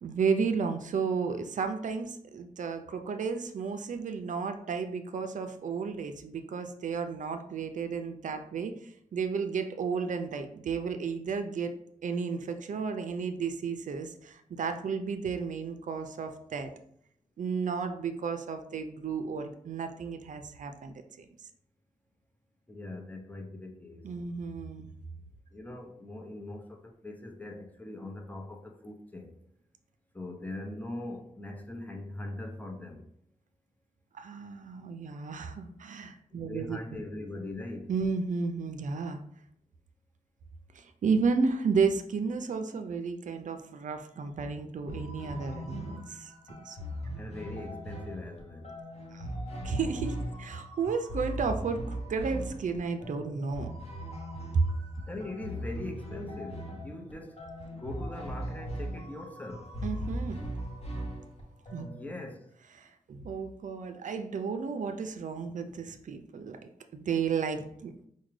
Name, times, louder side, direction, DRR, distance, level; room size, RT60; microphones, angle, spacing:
voice 1, 0.0-11.7 12.0-16.7 17.4-21.3 24.0-24.9 34.1-36.8 37.9-39.2 40.7-46.9 49.1-49.3 49.6-53.7 54.5-54.7 59.8-60.4 61.7-61.9 62.8-66.6 66.9-67.9, right 5 dB, 70° right, 0.4 m, -32 dB
voice 2, 22.7-24.1 25.5-29.3 30.1-33.0 36.3-37.9 47.2-48.8 55.1-57.4 57.7-59.7 61.8-62.5, left 2 dB, 10° left, 0.7 m, -41 dB
sound 1, 44.9-62.1, right 1 dB, 50° left, 0.8 m, -39 dB
4.8 x 2.2 x 3.1 m
cardioid pair, 70°, 14 cm